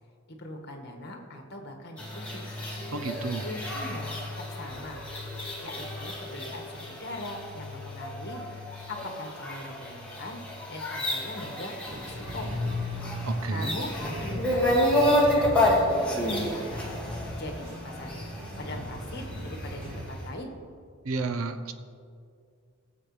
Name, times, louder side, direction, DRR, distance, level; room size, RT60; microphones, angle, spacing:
voice 1, 0.3-2.4 3.4-5.0 5.6-10.4 10.7-12.7 13.5-16.8 17.2-20.5, left 1 dB, 50° left, 2 dB, 1.6 m, -41 dB
sound 1, 2.0-19.8, left 1 dB, 5° left, 2.0 m, -30 dB
voice 2, 2.9-3.4 13.3-13.8 21.0-21.7, right 3 dB, 85° right, 8 dB, 0.8 m, -31 dB
sound 2, 11.8-20.0, left 1 dB, 45° right, 2.8 m, -37 dB
19.5 x 7.5 x 3.3 m, 2.2 s
head